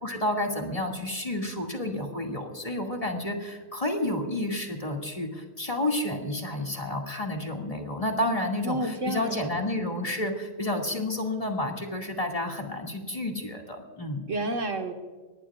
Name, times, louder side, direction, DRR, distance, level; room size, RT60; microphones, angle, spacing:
voice 1, 0.0-14.2, left 1 dB, 25° left, 1 dB, 2.4 m, -30 dB
voice 2, 8.6-9.5 14.3-14.9, right 1 dB, 60° right, 4 dB, 1.9 m, -30 dB
23.5 x 19.5 x 2.5 m, 1.4 s
omnidirectional pair, 1.5 m